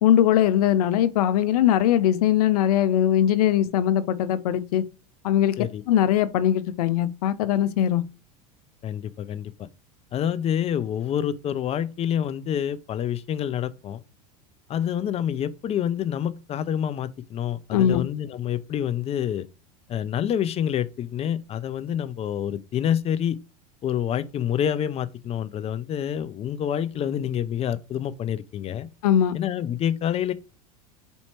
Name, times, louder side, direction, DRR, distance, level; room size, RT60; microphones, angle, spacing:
voice 1, 0.0-4.9 5.2-5.6 5.9-8.0 17.7-18.0 29.0-29.4, left 11 dB, 75° left, 0.6 m, -21 dB
voice 2, 8.8-9.7 10.1-14.0 14.7-19.5 19.9-23.4 23.8-28.9 29.3-30.3, left 9 dB, 30° left, 0.5 m, -27 dB
4.4 x 2.8 x 4.3 m
hypercardioid pair, 95°, 20 cm